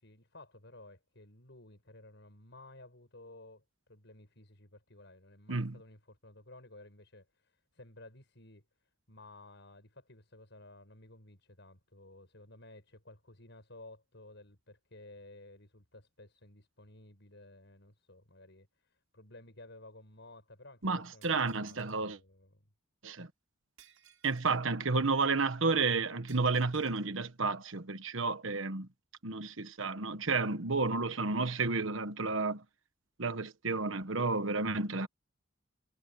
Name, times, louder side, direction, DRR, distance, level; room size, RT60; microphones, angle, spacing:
voice 1, 0.0-3.6 3.9-8.6 9.1-22.6, left 2 dB, 60° left, 6.9 m, -55 dB
voice 2, 20.8-22.2 23.0-23.3 24.2-28.9 29.2-32.6 33.2-35.1, right 4 dB, 70° right, 1.3 m, -31 dB
Shatter, 21.2-22.0 23.8-24.6 26.3-27.1, right 10 dB, 90° right, 7.5 m, -61 dB
head